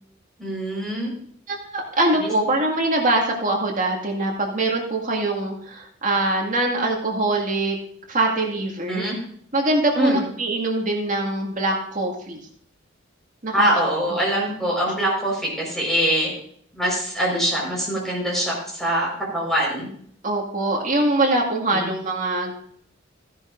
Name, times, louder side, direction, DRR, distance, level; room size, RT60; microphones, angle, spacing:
voice 1, 0.4-1.1 2.2-2.3 8.9-9.2 9.9-10.2 13.5-16.3 16.8-19.1 19.3-19.9 21.7-21.9, right 1 dB, ahead, -3 dB, 4.5 m, -23 dB
voice 2, 1.5-7.8 8.1-9.0 9.5-12.4 13.4-13.7 20.2-22.5, right 2 dB, 40° right, 0 dB, 1.9 m, -23 dB
15.5 x 10.5 x 2.6 m, 0.63 s
head